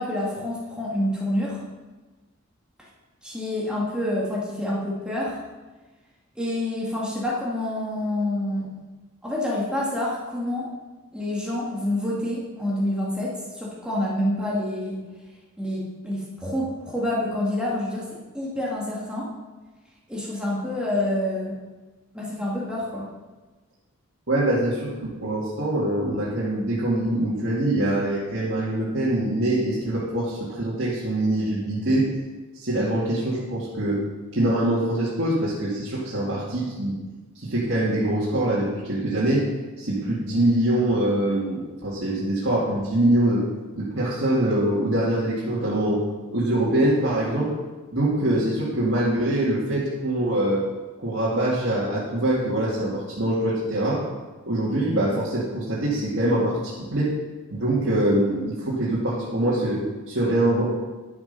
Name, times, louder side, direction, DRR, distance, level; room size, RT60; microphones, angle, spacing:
voice 1, 0.0-1.6 3.2-5.4 6.4-8.7 9.2-10.7 11.1-15.0 15.6-19.3 20.1-21.6 22.1-23.1, left 1 dB, 5° right, -6 dB, 2.2 m, -27 dB
voice 2, 24.3-32.1 32.5-34.0 34.3-37.0 37.3-39.5 39.8-43.4 43.7-46.0 46.3-47.5 47.9-50.6 51.0-54.0 54.5-57.1 57.5-60.6, right 1 dB, 60° right, -9 dB, 2.3 m, -24 dB
10.5 x 7.9 x 5.4 m, 1.2 s
head